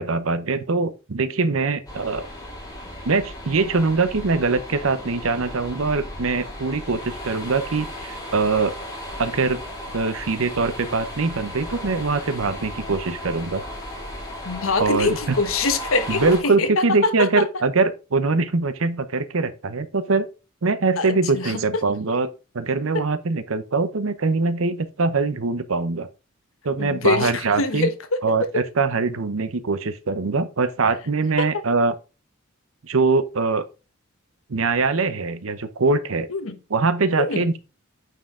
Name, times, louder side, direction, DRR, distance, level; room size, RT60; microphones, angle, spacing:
voice 1, 0.0-2.3 3.0-8.7 9.2-9.6 9.9-13.6 14.8-15.2 16.1-20.3 20.6-26.1 26.6-27.9 28.2-31.9 32.8-33.6 34.5-36.3 36.7-37.6, right 3 dB, 80° right, 0.8 m, -23 dB
sound 1, 1.9-16.4, left 1 dB, 20° left, 2.4 m, -35 dB
voice 2, 14.4-17.5 21.0-21.8 22.9-23.0 26.8-28.6 31.4-31.6 36.3-36.6 37.2-37.4, left 3 dB, 80° left, 1.1 m, -24 dB
9.2 x 4.6 x 3.7 m
head